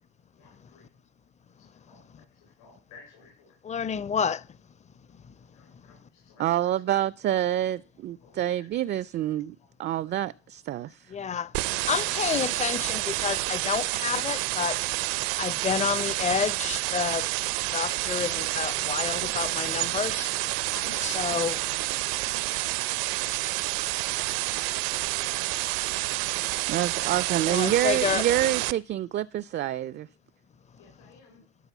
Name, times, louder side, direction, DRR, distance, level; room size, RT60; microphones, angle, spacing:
voice 1, 0.3-0.9 1.6-3.6 5.3-6.9 8.2-8.7 9.6-9.7 10.1-10.2 10.7-10.8 11.3-12.0 14.8-15.7 17.7-18.0 20.7-25.6 27.2-28.4 30.8-31.4, left 4 dB, 75° left, 4.1 m, -53 dB
voice 2, 3.6-4.5 5.1-5.3 5.7-5.9 11.1-11.6 11.8-14.8 15.4-17.3 17.7-20.3 21.0-21.6 26.2-26.5 27.5-28.3, left 7 dB, 20° left, 0.5 m, -29 dB
voice 3, 6.4-11.1 26.7-30.1, right 12 dB, 35° right, 0.4 m, -27 dB
sound 1, 11.5-28.7, right 20 dB, 75° right, 0.7 m, -29 dB
12.5 x 4.3 x 7.0 m
supercardioid pair, 95°, 33 cm